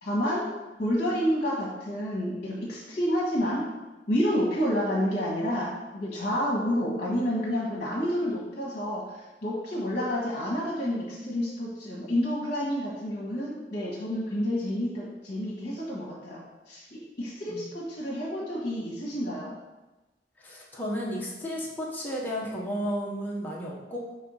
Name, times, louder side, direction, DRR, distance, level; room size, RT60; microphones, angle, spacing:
voice 1, 0.0-3.7 4.1-16.4 16.7-19.5, equal, 45° left, -5 dB, 1.4 m, -29 dB
voice 2, 20.4-24.0, equal, 10° left, -5 dB, 1.0 m, -33 dB
5.5 x 3.5 x 5.6 m, 1.1 s
head